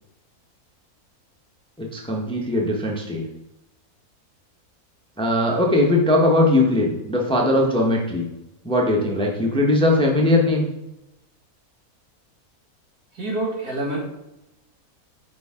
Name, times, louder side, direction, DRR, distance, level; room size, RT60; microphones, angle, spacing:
voice 1, 1.8-3.2 5.2-8.3 8.6-10.7, left 1 dB, 5° left, 0 dB, 1.0 m, -20 dB
voice 2, 13.1-14.0, right 2 dB, 75° right, -1 dB, 2.4 m, -26 dB
8.7 x 5.6 x 3.7 m, 0.91 s
omnidirectional pair, 1.6 m